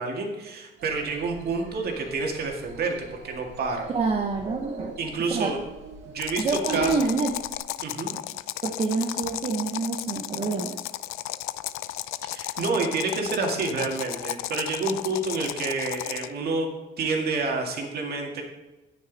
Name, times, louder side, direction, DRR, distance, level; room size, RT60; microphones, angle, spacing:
voice 1, 0.0-3.9 5.0-5.6 6.1-7.0 7.8-8.1 12.3-16.7 17.0-18.4, right 3 dB, 45° right, 1 dB, 2.0 m, -28 dB
sound 1, 0.8-7.6, right 3 dB, 65° right, 1.6 m, -46 dB
voice 2, 3.9-5.0 5.3-5.5 6.4-7.3 8.6-10.8, right 4 dB, 30° right, 1 dB, 0.8 m, -27 dB
sound 2, 6.2-16.4, left 15 dB, 85° left, 0.5 m, -34 dB
9.5 x 9.4 x 4.0 m, 1.1 s
cardioid pair, 170°, 21 cm